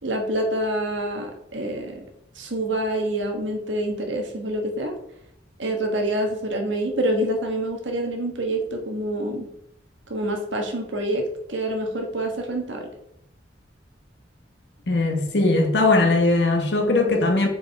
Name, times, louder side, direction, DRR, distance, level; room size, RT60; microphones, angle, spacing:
voice 1, 0.0-2.0 2.3-4.9 5.6-9.5 10.1-11.2 11.5-12.9, right 1 dB, 85° right, 3 dB, 1.4 m, -26 dB
voice 2, 14.9-17.5, left 2 dB, 65° left, 3 dB, 1.3 m, -19 dB
7.2 x 4.9 x 3.5 m, 0.76 s
head